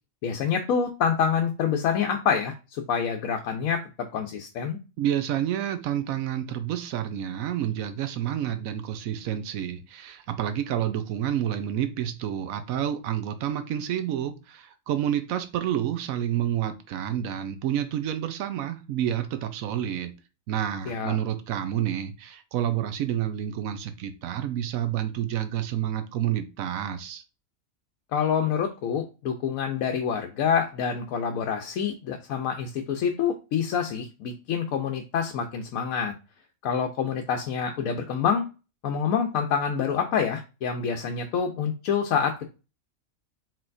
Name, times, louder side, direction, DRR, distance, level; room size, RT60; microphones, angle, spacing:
voice 1, 0.2-4.8 20.9-21.2 28.1-36.1 36.6-38.5 38.8-42.4, left 7 dB, 90° left, 4 dB, 1.1 m, -27 dB
voice 2, 5.0-20.1 20.5-27.2, right 10 dB, 80° right, 9 dB, 1.0 m, -29 dB
4.4 x 3.9 x 2.5 m, 0.30 s
omnidirectional pair, 1.4 m